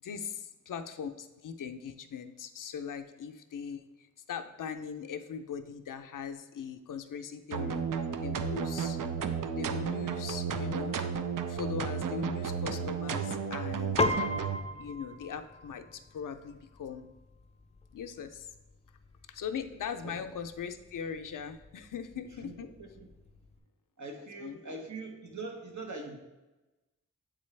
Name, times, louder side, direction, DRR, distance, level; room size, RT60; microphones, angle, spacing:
voice 1, 0.0-9.0 9.5-11.1 11.5-14.0 14.8-17.1 17.9-18.5 19.3-22.7 24.4-24.8, left 7 dB, 80° left, 8 dB, 0.5 m, -40 dB
sound 1, 7.5-14.6, right 6 dB, 85° right, 0.5 m, -33 dB
Piano, 14.0-23.6, left 2 dB, 20° left, 0.4 m, -39 dB
voice 2, 22.3-23.1 24.0-26.2, right 3 dB, 65° right, 2 dB, 1.0 m, -42 dB
8.1 x 3.8 x 3.2 m, 1.1 s
wide cardioid pair, 75°, 31 cm